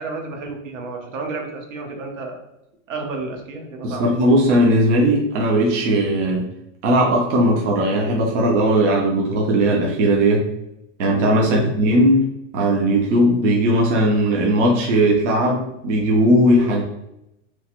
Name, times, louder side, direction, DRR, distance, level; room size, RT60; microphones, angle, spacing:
voice 1, 0.0-2.4 2.9-4.0 11.4-11.7 16.7-16.8, right 3 dB, 90° right, 1 dB, 1.0 m, -31 dB
voice 2, 3.8-6.5 6.8-10.5 11.0-12.3 12.5-16.8, right 1 dB, 65° right, -1 dB, 0.7 m, -18 dB
3.1 x 2.1 x 2.9 m, 0.85 s
supercardioid pair, 165°, 37 cm